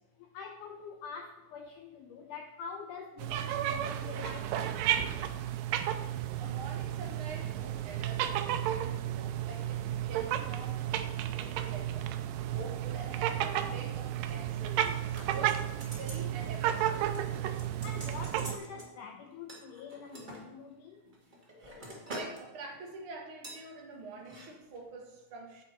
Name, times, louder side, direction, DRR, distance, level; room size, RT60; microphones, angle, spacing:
voice 1, 0.2-5.3 17.8-21.1, left 6 dB, 90° left, 4 dB, 1.8 m, -45 dB
sound 1, 3.2-18.6, right 11 dB, 80° right, 2.0 m, -33 dB
voice 2, 6.4-12.1 12.5-15.0 15.2-17.3 22.0-25.6, right 3 dB, 60° right, 0 dB, 1.4 m, -46 dB
sound 2, 14.8-16.3 16.6-16.8 17.1-18.9 19.5-20.4 21.0-22.4 22.7-22.9 23.4-23.6 24.2-24.5 24.7-24.8, right 1 dB, 30° right, 0.8 m, -46 dB
9.0 x 8.8 x 4.2 m, 1.0 s
omnidirectional pair, 4.5 m